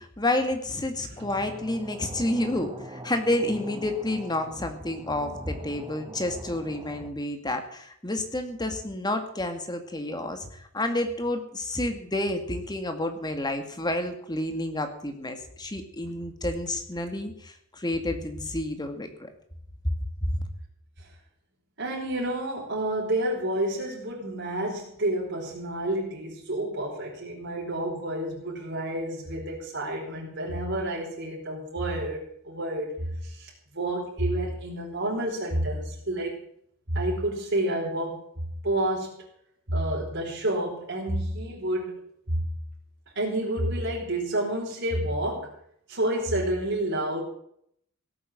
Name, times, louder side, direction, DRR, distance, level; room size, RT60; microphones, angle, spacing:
voice 1, 0.0-19.3 20.2-20.4, left 1 dB, 20° left, 6 dB, 2.2 m, -30 dB
voice 2, 1.1-1.4 21.0-21.1 21.8-36.3 36.9-39.2 39.7-42.0 42.3-42.5 43.1-45.5 45.9-47.2, right 1 dB, 60° right, -2 dB, 4.7 m, -29 dB
sound 1, 1.2-7.1, right 1 dB, 20° right, 1.8 m, -43 dB
17.5 x 8.7 x 7.5 m, 0.68 s
head